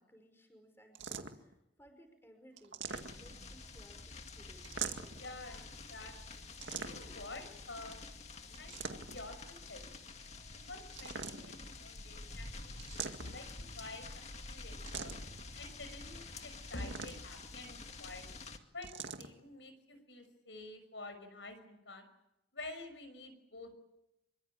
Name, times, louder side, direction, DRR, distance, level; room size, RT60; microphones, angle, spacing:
voice 1, 0.0-2.8 3.2-5.6 8.4-8.7, equal, 15° left, 5 dB, 5.4 m, -61 dB
sound 1, 0.9-1.5 2.6-3.5 4.6-5.3 6.6-7.2 8.5-9.3 10.9-11.7 12.8-13.6 14.9-15.4 16.7-17.5 18.8-19.3, right 6 dB, 80° right, 2.0 m, -43 dB
sound 2, 2.9-18.6, left 3 dB, 35° left, 2.1 m, -49 dB
voice 2, 5.2-8.0 8.3-10.1 10.7-15.1 15.6-18.2 18.7-18.9 19.2-22.1 22.5-23.8, left 2 dB, 75° left, 9 dB, 6.2 m, -49 dB
27.0 x 24.0 x 8.8 m, 0.88 s
head